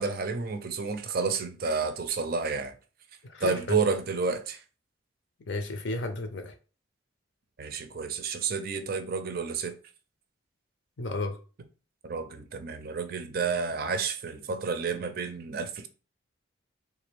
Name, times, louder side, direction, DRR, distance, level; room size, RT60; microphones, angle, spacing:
voice 1, 0.0-2.7 3.4-4.6 7.6-9.7 12.0-15.9, right 4 dB, 50° right, 0.4 m, -30 dB
voice 2, 3.2-3.8 5.5-6.5 11.0-11.4, left 2 dB, 65° left, 0.6 m, -33 dB
3.3 x 2.5 x 3.4 m
head